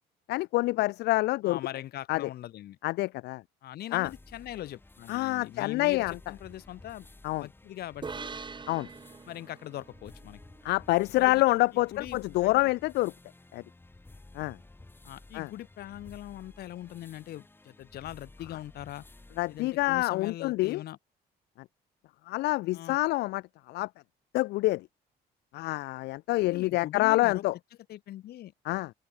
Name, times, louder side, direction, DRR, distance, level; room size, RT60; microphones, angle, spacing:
voice 1, 0.3-1.6 2.1-2.3 2.8-3.4 3.9-4.1 5.1-6.1 7.2-7.5 8.7-8.9 10.6-13.1 13.5-13.6 14.3-14.6 15.3-15.5 19.4-20.8 22.3-23.4 23.7-23.9 24.3-24.9 25.5-27.5 28.6-28.9, left 19 dB, 85° left, 1.4 m, -27 dB
voice 2, 1.4-2.8 3.6-7.1 7.4-8.3 9.3-10.4 11.2-11.4 11.7-12.6 15.0-19.1 19.5-21.0 22.7-23.0 26.5-27.4 27.9-28.5, left 13 dB, 70° left, 7.3 m, -41 dB
sound 1, 4.0-20.0, left 2 dB, 10° left, 6.1 m, -54 dB
sound 2, 8.0-11.5, right 5 dB, 25° right, 5.8 m, -44 dB
open air
cardioid pair, 110°, 17 cm